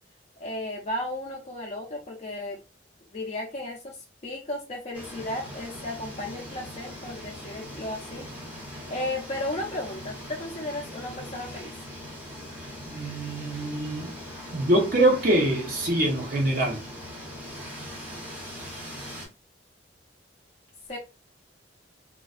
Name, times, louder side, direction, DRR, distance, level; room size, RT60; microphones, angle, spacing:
voice 1, 0.4-2.6 3.1-8.3 8.6-11.7 20.9-21.0, left 1 dB, 35° left, 0.4 m, -34 dB
sound 1, 4.9-19.3, equal, 10° right, 0.6 m, -41 dB
voice 2, 12.9-14.1 14.5-16.8, right 1 dB, 50° right, 0.8 m, -24 dB
2.3 x 2.2 x 2.4 m
head